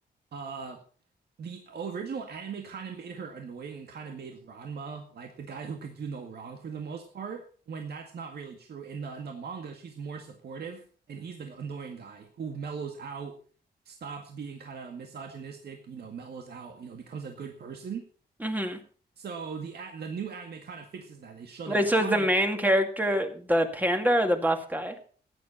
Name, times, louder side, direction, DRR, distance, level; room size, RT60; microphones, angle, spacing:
voice 1, 0.3-0.8 1.4-10.8 11.1-13.3 13.9-18.0 19.2-22.3, right 6 dB, 65° right, 4 dB, 2.0 m, -39 dB
voice 2, 18.4-18.8 21.7-24.9, equal, 10° right, 5 dB, 2.2 m, -25 dB
15.5 x 9.9 x 5.6 m, 0.42 s
wide cardioid pair, 130°, 18 cm